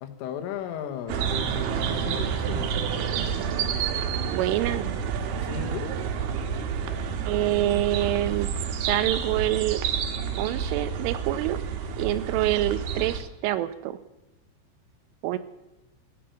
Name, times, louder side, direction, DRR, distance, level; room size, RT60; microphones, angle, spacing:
voice 1, 0.0-3.2 5.4-5.9, left 9 dB, 85° left, 6 dB, 3.8 m, -36 dB
sound 1, 1.1-13.2, right 7 dB, 70° right, 2.7 m, -29 dB
voice 2, 4.3-4.9 7.3-8.5 8.8-9.8 10.4-11.6 12.0-14.0 15.2-15.4, right 14 dB, 90° right, 12 dB, 3.3 m, -26 dB
14.5 x 8.8 x 9.3 m, 0.96 s
omnidirectional pair, 5.6 m